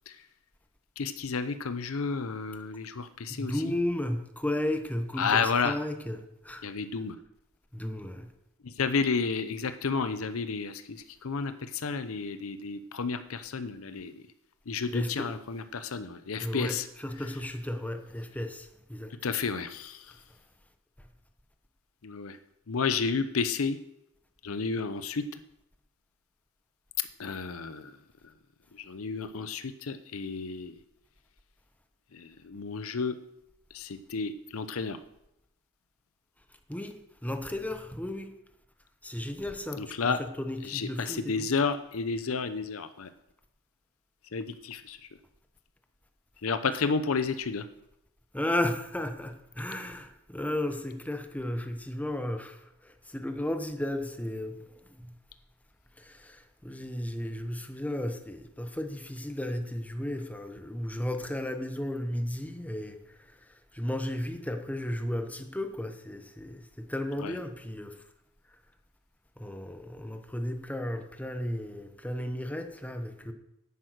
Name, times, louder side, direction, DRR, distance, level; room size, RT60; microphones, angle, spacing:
voice 1, 1.0-3.7 5.2-5.8 6.6-7.2 8.6-14.2 14.7-16.9 19.2-20.0 22.0-22.4 22.7-23.8 24.4-25.4 27.0-27.9 28.7-30.7 32.1-33.2 33.7-35.0 39.8-40.2 40.6-43.1 44.3-45.0 46.4-47.7 67.2-67.3, left 5 dB, 75° left, 0.7 m, -31 dB
voice 2, 3.3-6.7 7.7-8.3 14.9-15.4 16.4-19.1 36.7-36.9 37.2-38.3 39.0-41.5 48.3-54.7 55.0-55.2 56.0-68.0 69.4-73.3, left 1 dB, 5° left, 1.0 m, -34 dB
10.0 x 9.0 x 6.5 m
head